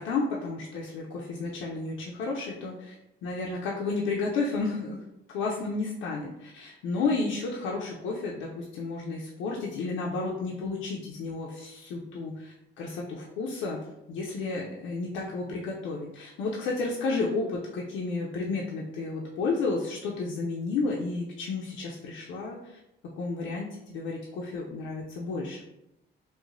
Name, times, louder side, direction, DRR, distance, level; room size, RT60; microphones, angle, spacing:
voice 1, 0.0-2.9 3.2-5.0 5.3-13.8 14.1-22.8 23.2-25.6, left 3 dB, 85° left, -3 dB, 0.4 m, -32 dB
3.0 x 2.1 x 2.5 m, 0.87 s
cardioid pair, 90°, 20 cm